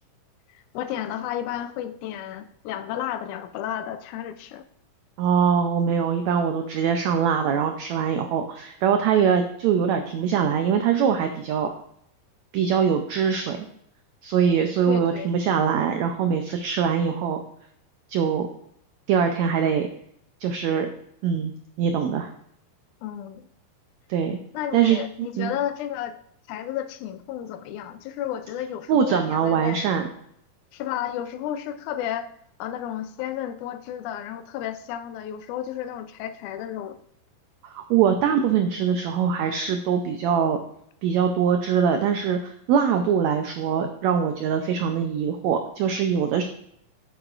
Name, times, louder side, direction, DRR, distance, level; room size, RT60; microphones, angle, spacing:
voice 1, 0.7-4.6 14.9-15.3 23.0-23.5 24.5-26.1 26.5-29.8 30.7-32.3 32.6-37.0, left 10 dB, 80° left, 10 dB, 1.8 m, -32 dB
voice 2, 5.2-11.7 12.5-13.6 14.2-17.4 18.1-18.5 19.1-19.9 20.4-20.9 21.2-21.5 21.8-22.3 24.1-24.4 24.7-25.5 28.9-30.1 37.6-40.6 41.0-46.4, right 7 dB, 90° right, 6 dB, 1.5 m, -23 dB
9.6 x 8.7 x 2.5 m, 0.71 s
omnidirectional pair, 3.9 m